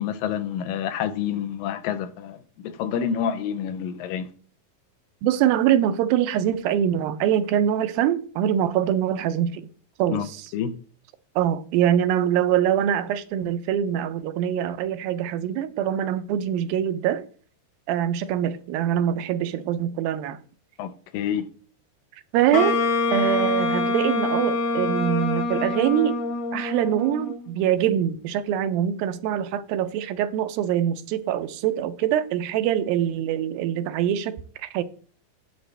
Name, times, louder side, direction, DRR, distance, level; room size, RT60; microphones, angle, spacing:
voice 1, 0.0-4.3 10.1-10.3 10.5-10.7 20.8-21.5, left 8 dB, 80° left, 2.3 m, -28 dB
voice 2, 5.2-9.7 10.0-10.4 11.4-17.2 17.9-20.4 22.3-22.8 23.1-26.2 26.5-34.8, right 10 dB, 85° right, 2.5 m, -24 dB
Wind instrument woodwind instrument, 22.5-27.5, left 3 dB, 60° left, 2.0 m, -25 dB
11.0 x 7.6 x 3.3 m
omnidirectional pair, 4.1 m